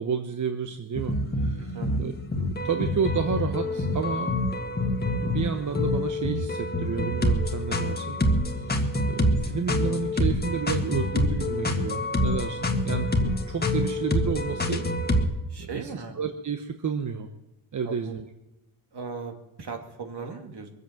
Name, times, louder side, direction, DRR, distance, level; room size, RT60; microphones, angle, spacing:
voice 1, 0.0-4.4 5.2-8.2 8.4-14.9 15.6-15.7 16.2-17.3 17.7-18.2, right 6 dB, 35° right, 7 dB, 1.0 m, -31 dB
sound 1, 1.0-15.3, left 1 dB, 20° left, 1.9 m, -26 dB
voice 2, 1.6-2.0 8.7-9.0 15.5-16.1 17.8-18.2 18.9-20.7, right 4 dB, 55° right, 4 dB, 2.9 m, -38 dB
22.0 x 8.3 x 7.6 m, 0.97 s
cardioid pair, 90°, 49 cm